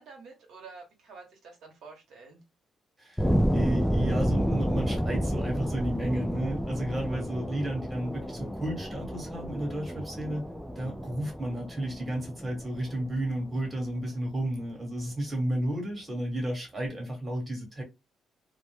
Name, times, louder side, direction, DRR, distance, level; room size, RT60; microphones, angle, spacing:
voice 1, 0.0-2.4, right 4 dB, 75° right, 0.9 m, -49 dB
voice 2, 3.0-10.4 10.7-17.8, right 1 dB, 20° right, 1.3 m, -32 dB
sound 1, 3.2-13.9, equal, 5° left, 0.4 m, -30 dB
2.1 x 2.1 x 3.0 m
cardioid pair, 90°, 0 cm